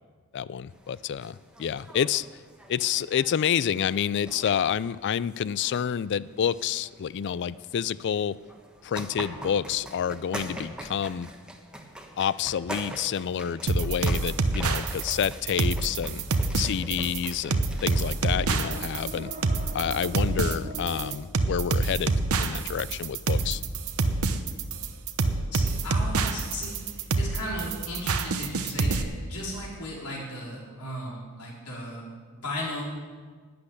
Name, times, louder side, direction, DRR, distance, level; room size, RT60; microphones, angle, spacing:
voice 1, 0.3-2.3 2.7-8.4 8.8-11.3 12.2-16.3 16.5-19.3 19.7-23.6, left 8 dB, 50° left, 19 dB, 0.3 m, -28 dB
sound 1, 0.7-18.2, right 1 dB, 5° right, 1.2 m, -44 dB
sound 2, 9.1-11.5 18.0-21.1, equal, 35° right, 1.8 m, -43 dB
sound 3, 13.7-29.0, right 3 dB, 75° right, 0.9 m, -26 dB
voice 2, 25.5-32.1 32.3-32.8, left 1 dB, 90° left, -4 dB, 4.4 m, -36 dB
12.0 x 8.4 x 9.8 m, 1.5 s
head